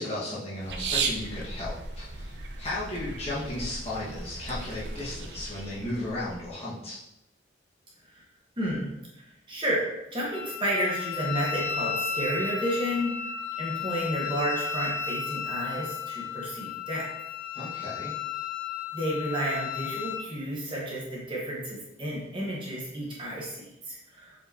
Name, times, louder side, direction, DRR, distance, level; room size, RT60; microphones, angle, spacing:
voice 1, 0.0-7.0 17.5-18.1, left 1 dB, 35° left, -8 dB, 1.9 m, -35 dB
sound 1, 0.6-6.5, right 4 dB, 70° right, 0.7 m, -36 dB
voice 2, 8.6-8.9 9.5-9.8 10.1-13.1 13.6-17.1 18.9-24.3, equal, 25° right, -5 dB, 1.5 m, -31 dB
Wind instrument woodwind instrument, 10.3-20.3, left 7 dB, 55° left, 0.7 m, -34 dB
7.6 x 4.9 x 3.0 m, 0.88 s
head